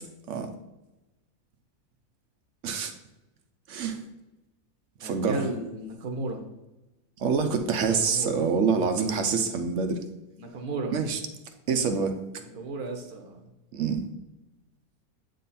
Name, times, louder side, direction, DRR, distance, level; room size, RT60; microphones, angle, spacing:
voice 1, 3.7-4.0 5.0-5.5 7.2-10.0 10.9-11.2 11.7-12.2 13.7-14.0, right 5 dB, 60° right, 7 dB, 1.0 m, -26 dB
voice 2, 5.0-6.4 7.9-8.3 10.4-10.9 12.4-13.5, right 2 dB, 80° right, 3 dB, 1.4 m, -34 dB
8.3 x 3.9 x 4.1 m, 1.0 s
omnidirectional pair, 1.6 m